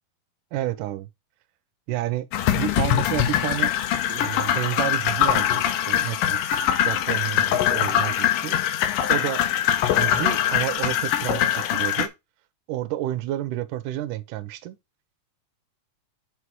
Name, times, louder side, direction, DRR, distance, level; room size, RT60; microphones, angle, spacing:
voice 1, 0.5-1.1 1.9-2.3 2.5-3.7 4.1-6.6 6.8-8.6 9.1-9.4 9.9-12.1 12.7-14.8, right 14 dB, 75° right, 2.1 m, -30 dB
sound 1, 2.3-12.1, left 11 dB, 75° left, 2.4 m, -23 dB
6.1 x 4.9 x 4.6 m
omnidirectional pair, 4.2 m